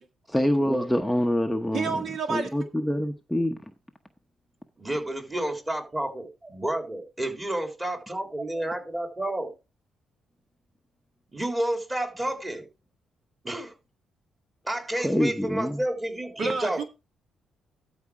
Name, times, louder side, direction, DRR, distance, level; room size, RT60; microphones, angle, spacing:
voice 1, 0.3-2.0 2.3-3.6 15.0-15.8, equal, ahead, 1.0 m, -25 dB
voice 2, 1.7-2.6 16.4-16.8, right 4 dB, 55° right, 1.8 m, -29 dB
voice 3, 4.8-9.5 11.3-12.6 13.4-13.7 14.7-16.8, right 1 dB, 20° right, 3.5 m, -30 dB
12.5 x 4.8 x 4.9 m
cardioid pair, 90°, 0 cm